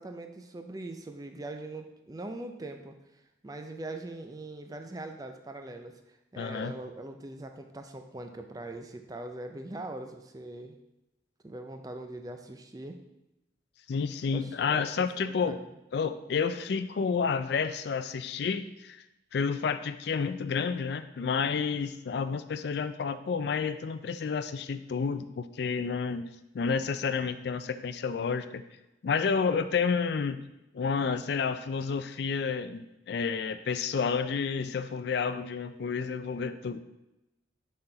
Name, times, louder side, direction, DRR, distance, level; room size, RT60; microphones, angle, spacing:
voice 1, 0.0-3.0 3.4-6.0 6.3-10.7 11.4-13.0 14.3-14.9 15.2-15.7, right 2 dB, 20° right, 6 dB, 0.4 m, -41 dB
voice 2, 6.4-6.8 13.9-15.6 15.9-19.0 19.3-26.2 26.5-28.6 29.0-30.4 30.7-36.8, left 5 dB, 55° left, 11 dB, 0.3 m, -30 dB
5.9 x 4.2 x 3.8 m, 0.94 s
head